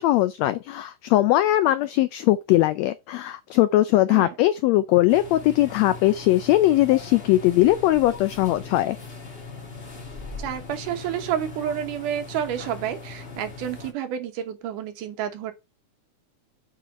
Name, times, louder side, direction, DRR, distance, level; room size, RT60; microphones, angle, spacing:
voice 1, 0.0-9.0, left 15 dB, 90° left, 1.5 m, -20 dB
sound 1, 5.1-13.9, left 3 dB, 40° left, 0.8 m, -40 dB
voice 2, 10.4-15.5, right 10 dB, 85° right, 2.6 m, -30 dB
7.4 x 3.9 x 5.1 m
omnidirectional pair, 3.6 m